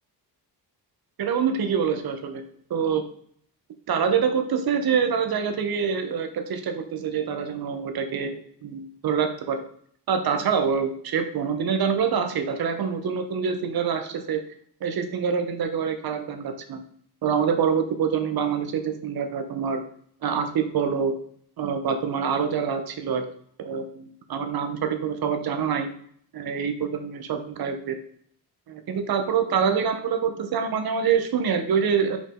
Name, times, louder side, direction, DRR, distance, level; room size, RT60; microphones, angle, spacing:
voice 1, 1.2-2.4 2.7-3.0 3.9-9.6 10.1-14.4 14.8-16.8 17.2-19.8 20.2-21.2 21.6-23.2 23.6-25.9 26.3-28.0 28.7-32.2, right 6 dB, 65° right, 8 dB, 0.9 m, -25 dB
5.3 x 5.1 x 3.7 m, 0.62 s
wide cardioid pair, 140°, 40 cm